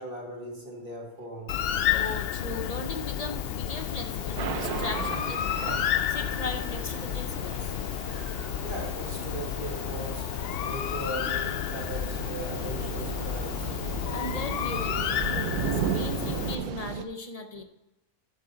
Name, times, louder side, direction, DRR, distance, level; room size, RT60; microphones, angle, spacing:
voice 1, 0.0-1.6 8.1-13.7 17.6-17.7, right 1 dB, 35° right, 0 dB, 2.0 m, -39 dB
Bird, 1.5-16.6, left 10 dB, 85° left, 0.5 m, -31 dB
voice 2, 1.9-5.6 6.1-7.7 14.1-17.6, left 2 dB, 35° left, 6 dB, 0.6 m, -37 dB
Thunder / Rain, 3.8-17.0, right 8 dB, 90° right, 1.2 m, -36 dB
11.0 x 7.4 x 4.0 m, 0.93 s
omnidirectional pair, 1.6 m